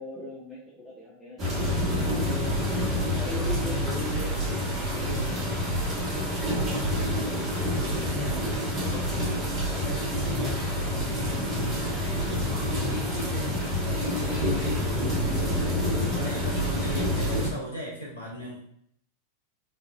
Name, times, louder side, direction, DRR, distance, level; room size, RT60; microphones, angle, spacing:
voice 1, 0.0-2.5 2.9-7.4 7.9-11.3, equal, 15° left, -8 dB, 1.1 m, -40 dB
sound 1, 1.4-17.5, equal, 30° right, 1.3 m, -27 dB
voice 2, 12.5-13.7 13.9-14.9 15.2-15.6 16.1-18.8, equal, 80° left, -4 dB, 1.0 m, -37 dB
4.5 x 3.6 x 2.3 m, 0.69 s
figure-of-eight pair, 90°, 0 cm